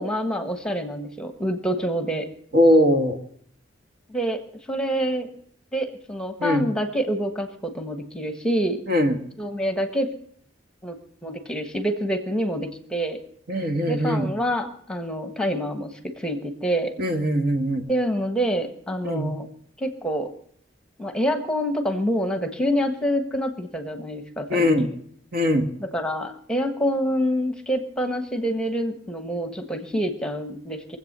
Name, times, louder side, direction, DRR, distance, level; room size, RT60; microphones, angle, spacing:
voice 1, 0.0-2.3 4.1-4.4 4.7-5.3 5.7-8.8 9.4-10.1 10.8-11.0 11.2-13.2 13.9-16.9 17.9-19.5 19.8-20.3 21.0-24.9 25.8-31.0, equal, 5° left, 6 dB, 1.3 m, -26 dB
voice 2, 2.5-3.2 6.4-6.7 8.9-9.2 13.5-14.3 17.0-17.8 19.0-19.3 24.5-24.9 25.3-25.7, equal, 55° right, 4 dB, 1.8 m, -20 dB
23.5 x 8.2 x 6.7 m, 0.62 s
head